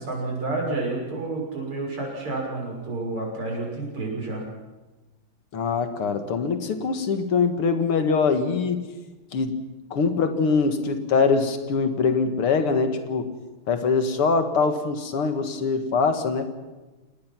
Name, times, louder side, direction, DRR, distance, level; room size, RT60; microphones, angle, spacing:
voice 1, 0.0-4.4, right 2 dB, 90° right, -1 dB, 7.5 m, -30 dB
voice 2, 5.5-8.8 9.3-9.5 9.9-13.3 13.7-16.5, left 4 dB, 85° left, 7 dB, 2.7 m, -23 dB
29.0 x 18.5 x 6.1 m, 1.2 s
omnidirectional pair, 2.4 m